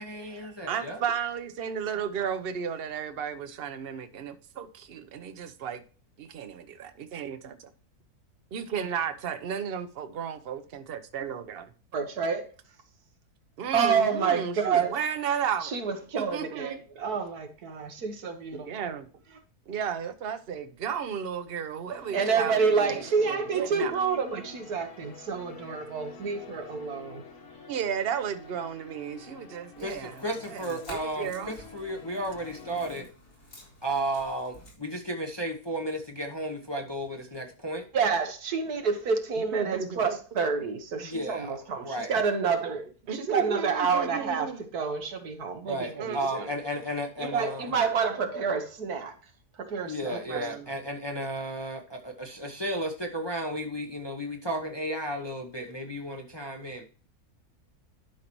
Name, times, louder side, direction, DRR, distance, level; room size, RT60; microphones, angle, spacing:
voice 1, 0.0-1.0 29.8-33.1 33.8-37.9 41.0-41.6 41.8-42.1 45.7-47.7 49.8-56.8, right 1 dB, 20° left, 0.8 m, -33 dB
voice 2, 0.7-5.8 6.2-7.7 8.5-11.7 13.6-15.7 16.2-16.8 18.5-19.1 19.7-23.9 27.7-30.2 30.5-31.5 39.5-40.0 43.1-44.6 46.0-46.2 50.1-50.7, right 7 dB, 45° right, 0.9 m, -34 dB
voice 3, 11.9-12.5 13.7-15.0 15.6-18.7 22.1-27.2 37.9-46.5 47.2-49.2 49.6-50.5, right 5 dB, 80° right, 1.7 m, -28 dB
sound 1, 21.9-33.1, left 3 dB, 60° left, 1.4 m, -48 dB
sound 2, 29.8-34.7, left 1 dB, 85° left, 4.7 m, -51 dB
11.5 x 5.6 x 3.1 m
omnidirectional pair, 1.6 m